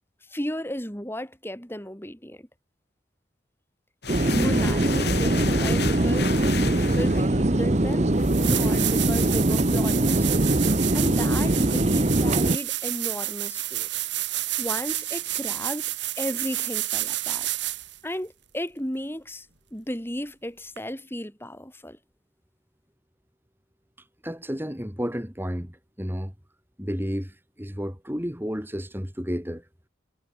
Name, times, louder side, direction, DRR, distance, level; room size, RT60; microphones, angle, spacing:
voice 1, 0.3-2.5 4.3-10.3 10.9-13.9 14.6-15.8 16.2-17.5 18.0-22.0, equal, 10° left, 5.7 m, -34 dB
sound 1, 4.0-9.3, left 5 dB, 55° left, 3.7 m, -34 dB
sound 2, 4.1-12.6, right 1 dB, 35° right, 1.0 m, -22 dB
sound 3, 7.7-7.8 8.2-18.0 20.8-20.9, right 15 dB, 65° right, 7.4 m, -30 dB
voice 2, 24.2-26.3 26.8-29.6, equal, 10° right, 4.6 m, -31 dB
head